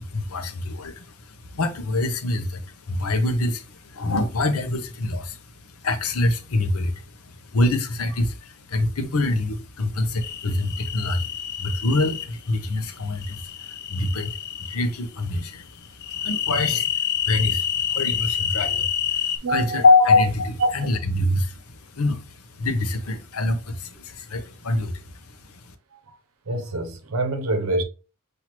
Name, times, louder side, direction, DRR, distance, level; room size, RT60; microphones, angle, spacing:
voice 1, 0.0-25.7, left 2 dB, 75° left, 0.8 m, -25 dB
sound 1, 10.2-12.3 13.2-14.8 16.0-19.4, left 9 dB, 45° left, 0.5 m, -28 dB
voice 2, 19.4-19.8 20.6-20.7 25.9-26.2 26.5-27.8, right 2 dB, 70° right, 0.7 m, -26 dB
6.0 x 2.7 x 3.0 m
head